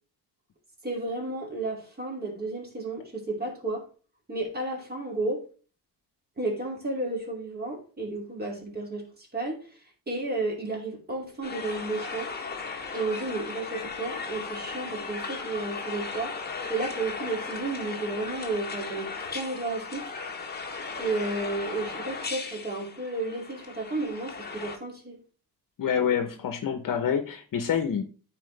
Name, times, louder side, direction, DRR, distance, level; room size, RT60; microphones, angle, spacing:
voice 1, 0.8-3.8 4.3-5.4 6.4-12.3 12.9-16.4 16.7-20.1 21.0-25.2, right 2 dB, 25° right, 2.7 m, -32 dB
sound 1, 11.4-24.8, left 4 dB, 25° left, 1.2 m, -37 dB
voice 2, 25.8-28.0, left 8 dB, 55° left, 1.0 m, -27 dB
13.5 x 4.6 x 3.3 m
wide cardioid pair, 175°, 40 cm